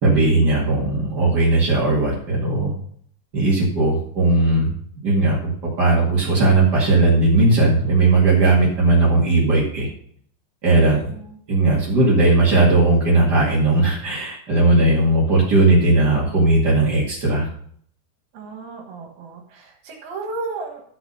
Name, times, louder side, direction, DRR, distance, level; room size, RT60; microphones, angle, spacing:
voice 1, 0.0-2.7 3.3-4.7 5.0-9.9 10.6-11.0 11.5-17.5, right 2 dB, 40° right, -5 dB, 1.5 m, -17 dB
voice 2, 10.9-11.4 18.3-20.8, right 3 dB, 65° right, 2 dB, 3.2 m, -34 dB
13.0 x 6.0 x 5.5 m, 0.62 s
omnidirectional pair, 5.2 m